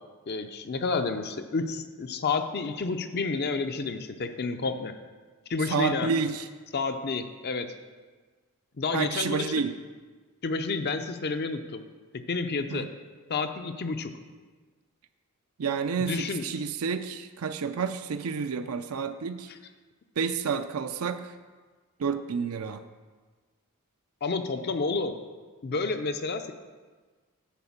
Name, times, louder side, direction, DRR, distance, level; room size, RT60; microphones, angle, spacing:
voice 1, 0.3-4.9 5.5-6.1 6.7-7.7 8.8-9.5 10.4-11.8 12.1-12.9 13.3-14.1 16.0-16.5 19.5-19.6 24.2-25.2 25.6-26.5, left 4 dB, 45° left, 7 dB, 0.5 m, -30 dB
voice 2, 5.7-6.4 8.9-9.7 12.7-12.9 15.6-19.5 20.2-21.3 22.0-22.8, right 5 dB, 75° right, 9 dB, 0.5 m, -30 dB
10.0 x 4.3 x 7.2 m, 1.4 s
head